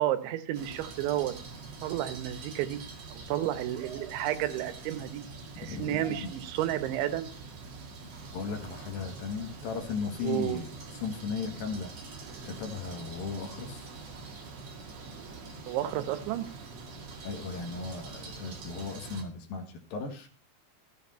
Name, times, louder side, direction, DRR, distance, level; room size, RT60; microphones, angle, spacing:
voice 1, 0.0-1.3 1.8-2.8 3.1-5.2 5.6-7.3 10.2-10.6 15.7-16.5, right 13 dB, 85° right, 11 dB, 3.4 m, -31 dB
sound 1, 0.5-19.2, right 4 dB, 50° right, 2.2 m, -44 dB
voice 2, 5.6-6.3 8.3-11.9 12.4-13.9 17.2-20.3, left 5 dB, 60° left, 5 dB, 2.9 m, -36 dB
13.5 x 7.5 x 5.5 m, 0.37 s
omnidirectional pair, 5.2 m